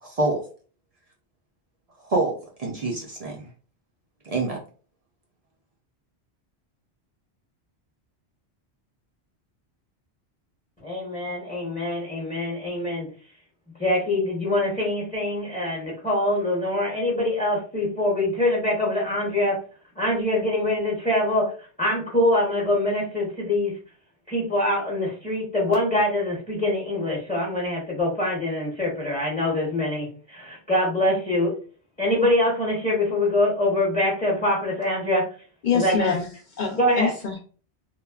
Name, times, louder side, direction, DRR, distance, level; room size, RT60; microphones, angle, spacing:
voice 1, 0.0-0.4 2.0-3.4 4.3-4.6, right 2 dB, 55° right, 0 dB, 0.4 m, -26 dB
voice 2, 10.8-13.1 13.8-19.6 20.0-21.4 21.8-23.7 24.3-31.5 32.0-35.2 35.7-36.1 36.8-37.1, left 1 dB, 10° left, -4 dB, 0.6 m, -24 dB
voice 3, 35.6-37.4, left 6 dB, 55° left, 1 dB, 0.5 m, -26 dB
3.0 x 2.1 x 2.3 m, 0.39 s
omnidirectional pair, 1.1 m